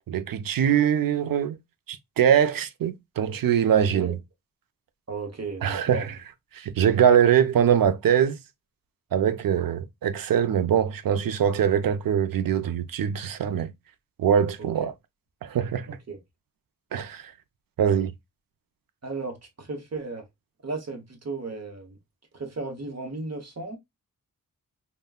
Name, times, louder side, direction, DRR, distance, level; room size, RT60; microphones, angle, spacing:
voice 1, 0.1-1.6 1.9-4.2 5.6-6.1 6.5-8.4 9.1-13.7 14.2-14.9 15.4-15.9 16.9-17.3 17.8-18.1, right 8 dB, 80° right, 0.5 m, -22 dB
voice 2, 3.7-4.1 5.1-6.1 14.6-14.7 15.9-16.2 19.0-20.2 20.6-22.0 22.3-23.8, right 3 dB, 50° right, 0.9 m, -35 dB
3.5 x 2.2 x 2.3 m
wide cardioid pair, 110°, 34 cm